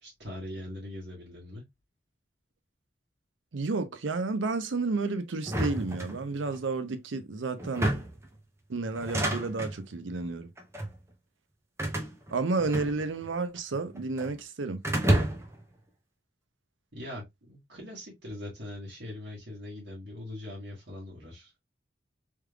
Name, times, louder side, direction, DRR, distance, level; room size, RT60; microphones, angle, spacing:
voice 1, 0.0-1.6 16.9-21.5, left 1 dB, 60° right, 1.4 m, -41 dB
voice 2, 3.5-7.9 8.7-10.5 12.3-14.8, right 3 dB, 80° right, 0.6 m, -31 dB
sound 1, 5.4-6.6 7.6-8.3 8.9-9.8 10.6-11.0 11.8-13.3 13.6-14.3 14.8-15.6, right 1 dB, 15° right, 0.6 m, -30 dB
3.3 x 3.3 x 2.2 m
head